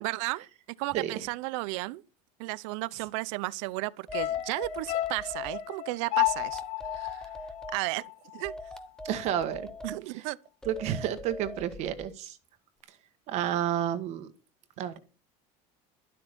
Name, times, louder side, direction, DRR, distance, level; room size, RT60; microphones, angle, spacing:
voice 1, 0.0-2.0 2.4-6.6 6.9-7.2 7.7-8.5 9.8-10.4, right 22 dB, 70° right, 0.7 m, -34 dB
sound 1, 4.1-8.5 8.8-8.9, left 17 dB, 50° left, 0.6 m, -32 dB
sound 2, 4.1-5.6 6.3-7.8 8.4-10.0 10.6-12.1, left 1 dB, 5° left, 0.9 m, -42 dB
voice 2, 9.0-9.7 10.1-10.3 10.6-12.4 13.3-14.3 14.8-15.0, right 10 dB, 45° right, 1.5 m, -30 dB
12.5 x 12.0 x 5.3 m
cardioid pair, 170°, 17 cm